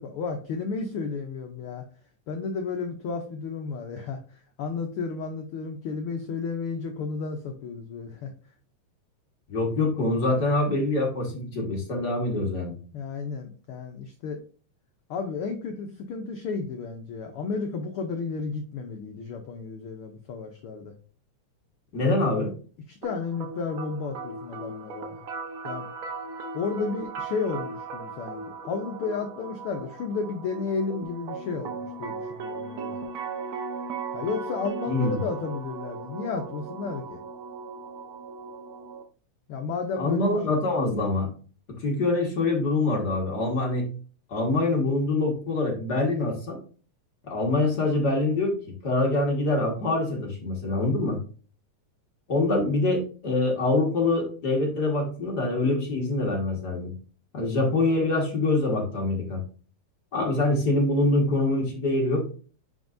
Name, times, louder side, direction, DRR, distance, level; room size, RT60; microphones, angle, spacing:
voice 1, 0.0-1.8 2.3-8.3 12.9-14.4 15.1-20.9 22.0-22.1 22.9-25.2 25.6-25.9 26.5-33.0 34.1-37.2 39.5-40.3, left 4 dB, 85° left, 4 dB, 1.2 m, -32 dB
voice 2, 9.5-12.8 21.9-22.5 34.9-35.2 40.0-41.3 41.8-43.8 44.3-46.6 47.3-48.5 48.8-51.2 52.3-56.9 57.3-59.4 60.1-62.2, left 2 dB, 40° left, 0 dB, 1.8 m, -25 dB
sound 1, 23.0-39.0, right 4 dB, 70° right, 1.2 m, -37 dB
9.5 x 4.6 x 2.6 m, 0.40 s
omnidirectional pair, 3.4 m